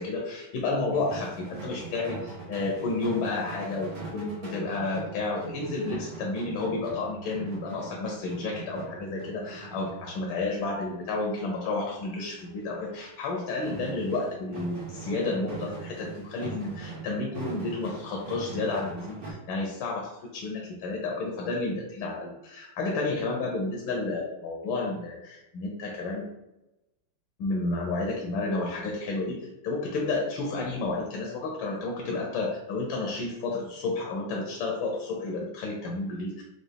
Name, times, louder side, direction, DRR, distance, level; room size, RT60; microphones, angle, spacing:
voice 1, 0.0-26.3 27.4-36.4, left 3 dB, 75° left, 0 dB, 1.4 m, -31 dB
sound 1, 0.9-10.5 11.8-12.1 12.4-12.5 12.9-13.3 13.6-19.3, right 4 dB, 85° right, 2.1 m, -41 dB
4.8 x 2.3 x 3.3 m, 0.95 s
omnidirectional pair, 2.3 m